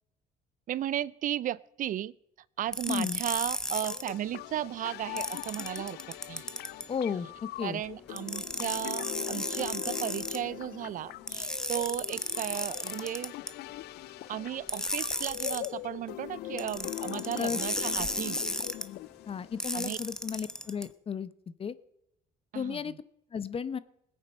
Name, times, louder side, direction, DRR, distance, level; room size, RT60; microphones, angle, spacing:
voice 1, 0.7-2.1 2.6-6.0 6.3-6.5 7.6-13.3 14.3-18.4 19.7-20.0 22.5-23.0, right 12 dB, 50° right, 20 dB, 0.4 m, -35 dB
sound 1, 2.7-4.1 5.2-6.9 8.2-10.4 11.3-13.5 14.7-15.7 16.6-18.8 19.6-20.8, left 1 dB, 5° left, 1.0 m, -34 dB
voice 2, 2.9-3.2 6.9-7.3 7.6-7.8 17.4-17.6 19.3-21.3 21.6-21.7 22.5-22.9 23.3-23.8, left 6 dB, 35° left, 16 dB, 0.7 m, -33 dB
sound 2, 3.8-19.8, left 16 dB, 75° left, 0.4 m, -42 dB
20.0 x 8.8 x 5.5 m, 0.81 s
cardioid pair, 110°, 17 cm